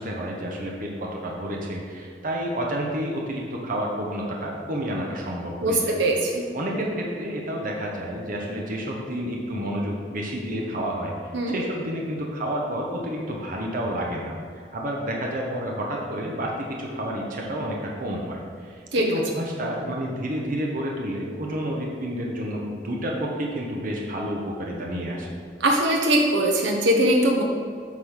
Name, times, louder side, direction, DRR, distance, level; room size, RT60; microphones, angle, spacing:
voice 1, 0.0-5.9 6.5-25.3, equal, 50° right, -1 dB, 1.1 m, -30 dB
voice 2, 5.6-6.4 11.3-11.6 18.9-19.1 25.6-27.4, right 1 dB, 75° right, 1 dB, 0.9 m, -21 dB
8.3 x 4.0 x 6.4 m, 2.2 s
head